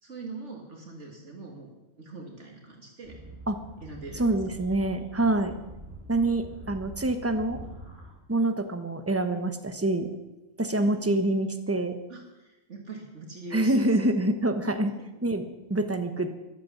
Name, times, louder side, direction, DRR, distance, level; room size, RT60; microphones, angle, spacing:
voice 1, 0.0-3.2 3.8-4.3 10.8-11.1 12.1-13.9 14.8-14.9, right 2 dB, 60° right, 1 dB, 2.2 m, -42 dB
sound 1, 3.0-8.1, right 1 dB, 35° right, 4.7 m, -44 dB
voice 2, 4.2-5.5 6.1-7.6 8.3-10.1 10.6-12.0 13.5-14.9 15.2-15.4 15.7-16.3, right 2 dB, 10° right, 8 dB, 1.0 m, -26 dB
14.0 x 11.5 x 7.3 m, 1.0 s
omnidirectional pair, 1.4 m